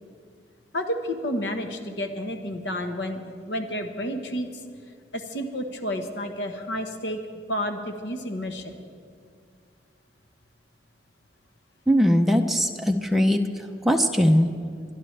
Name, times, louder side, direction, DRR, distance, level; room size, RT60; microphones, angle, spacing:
voice 1, 0.7-4.5 5.1-7.2 7.5-8.7, equal, 75° left, 6 dB, 1.2 m, -30 dB
voice 2, 11.9-13.4 13.8-14.5, equal, ahead, 3 dB, 0.5 m, -20 dB
22.5 x 12.0 x 3.3 m, 2.2 s
head